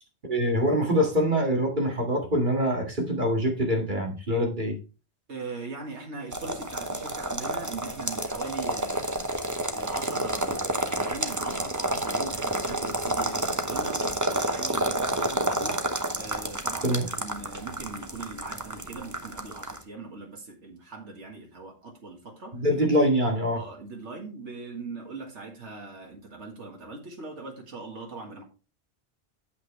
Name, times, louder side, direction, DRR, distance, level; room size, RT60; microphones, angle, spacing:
voice 1, 0.2-4.8 16.8-17.1 22.5-23.6, equal, 45° right, 2.3 m, -24 dB
voice 2, 5.3-9.3 9.7-22.6 23.5-28.4, right 3 dB, 90° right, 2.1 m, -40 dB
sound 1, 6.3-19.8, right 1 dB, 20° right, 0.8 m, -30 dB
8.4 x 8.1 x 3.2 m
omnidirectional pair, 1.2 m